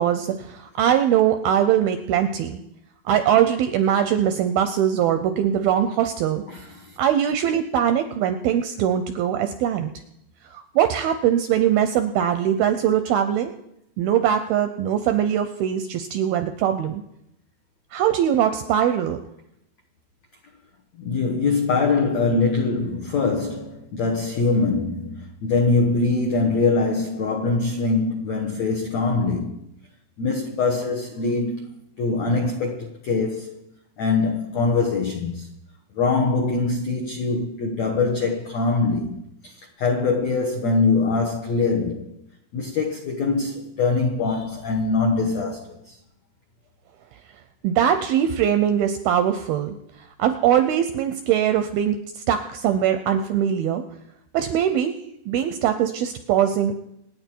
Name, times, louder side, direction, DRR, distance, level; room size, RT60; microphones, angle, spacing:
voice 1, 0.0-2.6 3.1-6.4 7.0-9.9 10.5-13.5 14.0-17.0 17.9-19.2 47.6-49.8 50.2-53.8 54.3-55.0 55.3-56.7, right 9 dB, 85° right, 2.2 m, -21 dB
voice 2, 6.5-7.0 21.0-29.6 30.2-33.6 34.0-35.5 36.0-42.2 42.5-46.0, left 3 dB, 75° left, 1.6 m, -23 dB
26.5 x 9.2 x 4.5 m
omnidirectional pair, 5.0 m